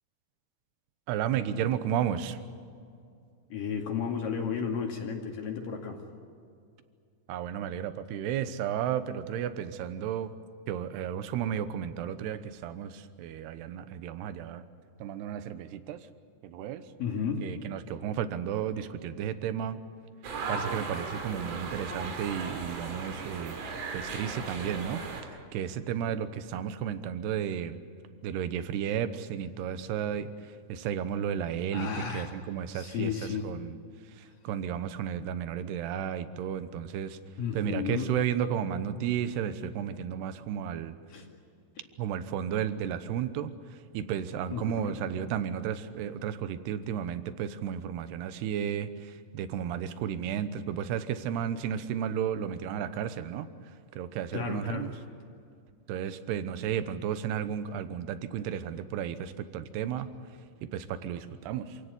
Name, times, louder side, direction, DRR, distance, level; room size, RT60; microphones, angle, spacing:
voice 1, 1.1-2.4 7.3-10.3 10.7-14.6 15.0-16.1 16.4-16.9 17.4-19.8 20.5-27.8 28.2-33.2 33.4-33.8 34.1-37.2 37.5-40.9 42.0-53.5 54.0-54.9 55.9-60.1 60.6-61.8, right 9 dB, 70° right, 12 dB, 2.8 m, -33 dB
voice 2, 3.5-6.0 17.0-17.5 31.7-32.3 32.7-33.5 37.4-38.1 41.1-41.3 44.5-45.0 54.3-54.9, left 6 dB, 55° left, 2 dB, 3.5 m, -33 dB
sound 1, 20.2-25.2, right 4 dB, 90° right, 5.6 m, -37 dB
27.5 x 17.0 x 9.7 m, 2.4 s
omnidirectional pair, 5.4 m